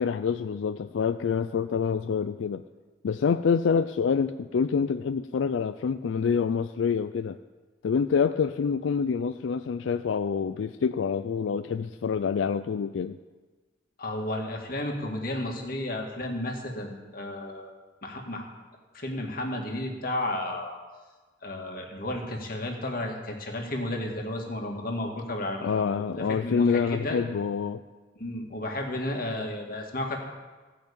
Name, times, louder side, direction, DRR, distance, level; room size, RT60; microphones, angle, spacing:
voice 1, 0.0-2.6 3.0-7.4 7.8-13.2 25.6-27.8, left 6 dB, 90° left, 11 dB, 0.4 m, -26 dB
voice 2, 14.0-17.7 18.0-18.4 18.9-20.8 21.4-26.0 26.3-27.2 28.2-30.2, left 1 dB, 50° left, 1 dB, 2.0 m, -33 dB
15.5 x 5.9 x 8.5 m, 1.3 s
head